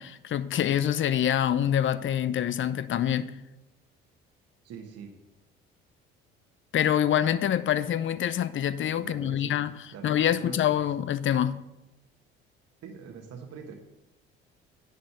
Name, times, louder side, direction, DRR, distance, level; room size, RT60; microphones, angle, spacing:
voice 1, 0.0-3.3 6.7-9.7 10.0-11.6, left 10 dB, 40° left, 0.6 m, -26 dB
voice 2, 4.6-5.1 9.0-10.1 10.4-10.6 12.8-13.7, right 6 dB, 55° right, 1.3 m, -43 dB
10.0 x 4.2 x 6.7 m
hypercardioid pair, 60°, 29 cm